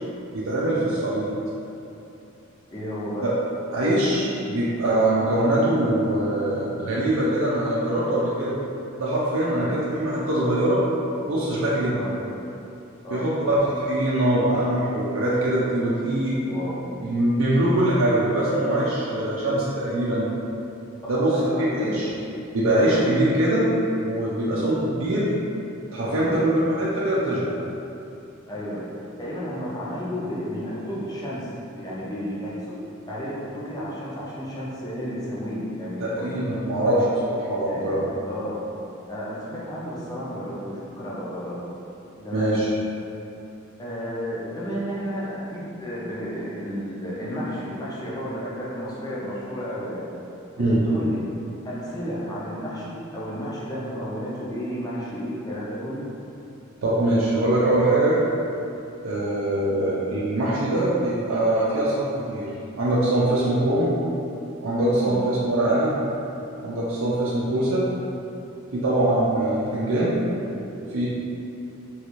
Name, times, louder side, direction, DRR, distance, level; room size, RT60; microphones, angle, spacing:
voice 1, 0.3-1.3 3.2-3.3 3.7-8.6 9.0-10.8 11.3-12.0 13.1-16.4 17.0-20.3 21.1-22.1 22.5-23.7 24.0-25.3 25.9-27.6 36.2-37.0 37.5-38.0 42.2-42.7 50.6-50.8 56.8-58.2 59.0-62.5 62.8-63.9 64.6-66.0 66.6-67.9 68.7-70.2 70.9-71.1, right 1 dB, 75° right, -8 dB, 0.5 m, -23 dB
voice 2, 2.7-3.3 9.5-9.8 11.9-12.1 13.0-13.3 16.5-16.9 17.5-17.6 21.0-22.0 22.9-23.1 24.5-24.7 26.2-26.4 28.5-28.9 29.2-31.5 31.8-32.8 33.0-37.1 37.7-38.7 39.1-41.6 42.2-42.6 43.8-50.1 50.6-51.2 51.6-56.0 65.0-65.2, equal, 20° left, -7 dB, 0.5 m, -32 dB
3.1 x 2.4 x 3.0 m, 2.8 s
head